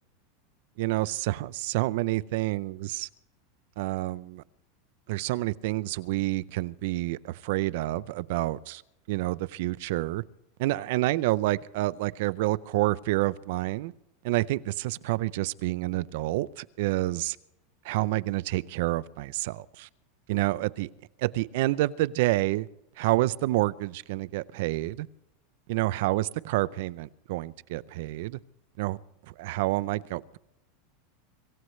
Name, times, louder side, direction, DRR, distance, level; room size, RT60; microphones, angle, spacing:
voice 1, 0.8-3.1 3.8-4.4 5.1-8.8 9.1-10.2 10.6-13.9 14.2-17.4 17.8-19.9 20.3-20.9 21.2-22.7 23.0-25.1 25.7-28.4 28.8-29.0 29.4-30.4, right 18 dB, 65° right, 0.5 m, -28 dB
25.5 x 16.0 x 3.2 m
supercardioid pair, 145°, 0 cm